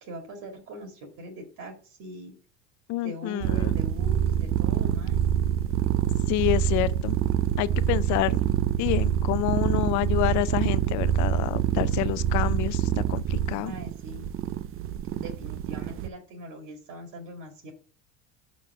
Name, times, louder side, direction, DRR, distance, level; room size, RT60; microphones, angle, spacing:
voice 1, 0.0-2.3 3.0-5.3 13.6-14.3 15.1-17.7, equal, 60° right, 2.2 m, -41 dB
voice 2, 2.9-3.8 6.3-7.2 7.6-8.4 8.8-13.7, left 16 dB, 55° left, 0.5 m, -28 dB
sound 1, 3.4-16.1, right 10 dB, 40° right, 0.5 m, -26 dB
6.2 x 4.2 x 5.4 m
supercardioid pair, 100°, 36 cm